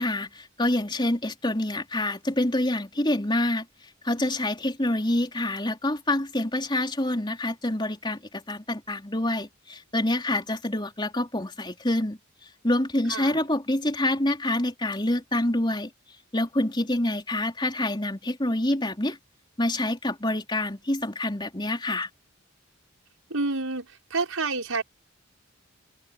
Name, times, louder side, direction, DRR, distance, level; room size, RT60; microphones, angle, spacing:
voice 1, 0.0-3.6 4.0-12.2 12.6-15.9 16.3-19.2 19.6-22.1, left 1 dB, 20° left, 4.2 m, -26 dB
voice 2, 23.3-23.9 24.1-24.8, right 3 dB, 90° right, 5.6 m, -28 dB
open air
head